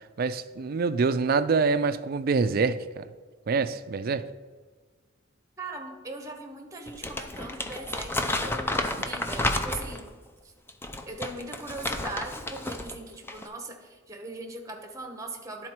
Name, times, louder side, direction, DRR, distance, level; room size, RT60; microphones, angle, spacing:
voice 1, 0.2-3.1 3.5-4.3, right 4 dB, 50° right, 0.4 m, -25 dB
voice 2, 5.6-10.1 11.1-15.7, right 2 dB, 15° right, 0.9 m, -39 dB
Crumpling crinkling, 6.9-10.1 10.7-12.9 13.2-13.5, left 1 dB, 10° left, 0.4 m, -31 dB
11.0 x 4.1 x 4.4 m
head